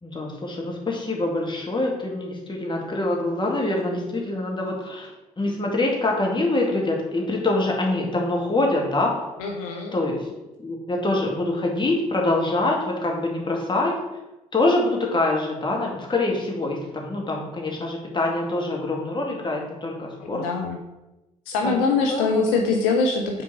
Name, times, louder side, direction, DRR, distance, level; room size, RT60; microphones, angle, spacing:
voice 1, 0.0-5.1 5.4-9.1 9.9-10.3 10.6-14.0 14.5-20.4 21.6-22.6, left 2 dB, 25° left, -1 dB, 2.3 m, -25 dB
voice 2, 9.4-9.9 20.2-20.8 21.5-23.4, left 4 dB, 70° left, 1 dB, 0.8 m, -23 dB
6.1 x 4.6 x 6.3 m, 1.0 s
figure-of-eight pair, 45°, 18 cm